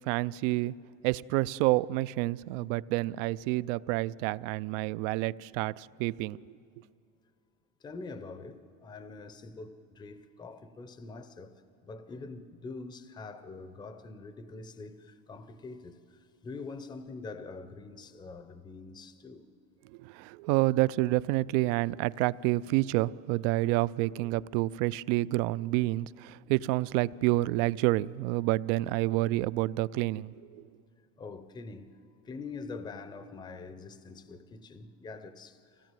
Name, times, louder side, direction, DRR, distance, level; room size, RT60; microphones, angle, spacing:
voice 1, 0.1-0.7 1.0-6.4 20.0-30.6, right 18 dB, 70° right, 0.5 m, -28 dB
voice 2, 7.8-11.6 11.8-16.0 16.4-19.4 31.2-31.9 32.2-35.9, left 3 dB, 10° left, 0.6 m, -44 dB
24.5 x 17.0 x 9.0 m
cardioid pair, 160°, 40 cm